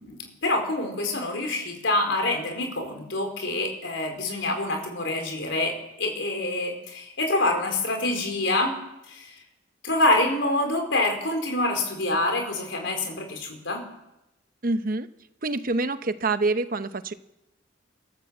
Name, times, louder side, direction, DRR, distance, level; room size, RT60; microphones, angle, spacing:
voice 1, 0.0-8.7 9.1-9.3 9.8-13.8, left 2 dB, 65° left, 4 dB, 4.6 m, -26 dB
voice 2, 14.6-15.1 15.4-17.1, right 3 dB, 45° right, 11 dB, 0.9 m, -26 dB
26.0 x 13.5 x 7.7 m, 0.92 s
head